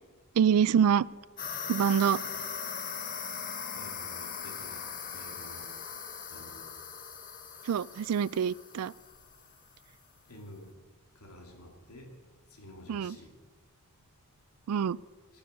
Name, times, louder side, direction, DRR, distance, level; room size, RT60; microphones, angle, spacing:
voice 1, 0.4-1.1 1.7-2.2 7.6-8.9 12.9-13.2 14.7-15.0, right 8 dB, 80° right, 22 dB, 0.3 m, -25 dB
sound 1, 1.4-9.6, left 6 dB, 40° left, 1.1 m, -40 dB
voice 2, 3.7-4.9 5.1-5.7 6.3-6.7 10.3-10.7 11.2-12.1 12.5-13.3, left 1 dB, 90° left, 1 dB, 2.7 m, -50 dB
18.0 x 7.1 x 6.6 m, 1.4 s
head